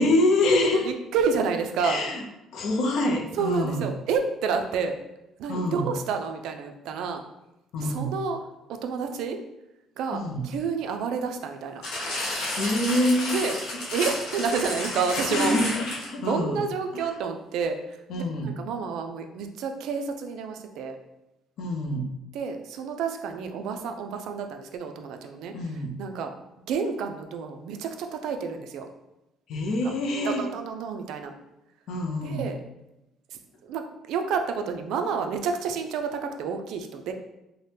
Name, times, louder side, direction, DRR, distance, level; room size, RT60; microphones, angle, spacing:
voice 1, 0.0-0.9 1.8-2.2 2.5-3.9 5.5-5.9 7.7-8.1 10.1-10.5 12.6-13.4 13.7-14.1 15.3-16.6 16.9-17.2 18.1-18.6 21.6-22.1 25.5-26.0 29.5-30.5 31.9-32.5, left 1 dB, 60° left, 2 dB, 0.4 m, -26 dB
voice 2, 0.9-2.0 3.4-5.0 5.4-7.2 7.8-8.4 8.8-9.4 10.0-11.8 13.3-13.6 13.9-15.5 16.2-17.8 18.4-21.0 22.3-25.5 26.0-26.3 26.7-28.9 30.2-31.3 32.2-32.6 33.7-37.1, right 5 dB, 70° right, 6 dB, 0.3 m, -29 dB
sound 1, 11.8-16.3 17.0-17.1, left 1 dB, 85° left, 1.1 m, -31 dB
2.7 x 2.1 x 3.3 m, 0.92 s
cardioid pair, 150°, 0 cm